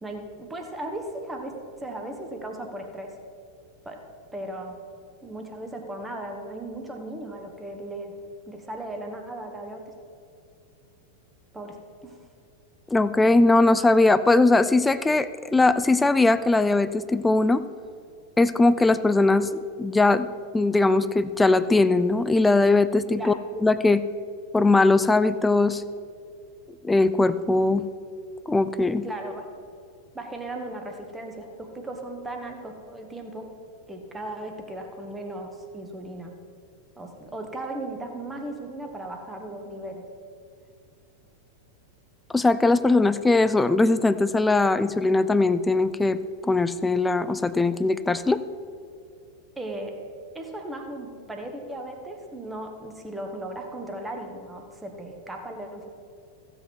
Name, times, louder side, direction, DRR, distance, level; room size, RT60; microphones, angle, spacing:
voice 1, 0.0-3.1 3.8-4.0 4.3-4.8 5.2-8.2 8.5-9.9 11.5-11.8 12.0-12.2 23.2-23.3 29.0-29.4 30.1-33.5 33.9-36.3 37.0-40.1 49.6-50.0 50.3-55.9, right 1 dB, 10° right, 3 dB, 1.5 m, -36 dB
voice 2, 12.9-17.6 18.4-19.5 19.8-20.3 20.5-23.3 23.6-24.0 24.5-25.8 26.8-27.8 28.5-29.0 42.3-48.4, left 2 dB, 10° left, 14 dB, 0.4 m, -20 dB
15.0 x 8.0 x 4.6 m, 2.4 s
figure-of-eight pair, 90°, 0 cm